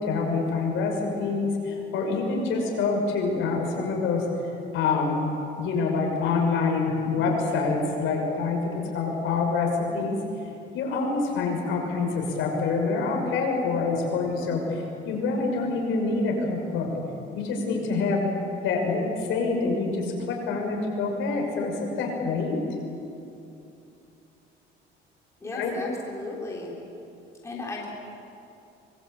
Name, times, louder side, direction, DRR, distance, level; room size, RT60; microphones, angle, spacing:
voice 1, 0.0-4.2 4.7-5.3 5.6-10.2 10.7-16.9 17.3-18.3 18.6-22.6 25.5-25.7, left 4 dB, 70° left, 1 dB, 6.2 m, -26 dB
voice 2, 25.4-26.7 27.4-27.9, left 2 dB, 15° left, -3 dB, 3.7 m, -35 dB
25.5 x 22.5 x 8.7 m, 2.7 s
cardioid pair, 165°, 21 cm